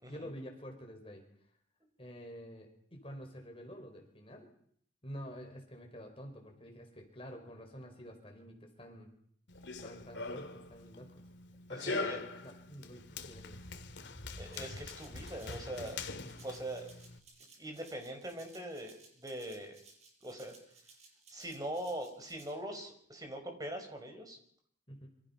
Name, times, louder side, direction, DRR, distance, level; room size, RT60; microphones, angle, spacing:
voice 1, 0.1-1.2 2.0-4.5 5.0-9.1 9.8-11.2 11.7-13.6 16.1-16.3 24.9-25.1, equal, 30° left, 3 dB, 5.1 m, -48 dB
Run, 9.5-17.2, left 3 dB, 75° left, 2.2 m, -43 dB
voice 2, 11.7-12.2 14.4-16.0 16.4-16.8 17.6-19.8 20.2-20.5 21.3-24.4, right 1 dB, 20° right, 4 dB, 5.4 m, -42 dB
Rattle (instrument), 14.5-22.5, right 4 dB, 35° right, 6.8 m, -60 dB
27.5 x 26.0 x 5.9 m, 0.64 s
head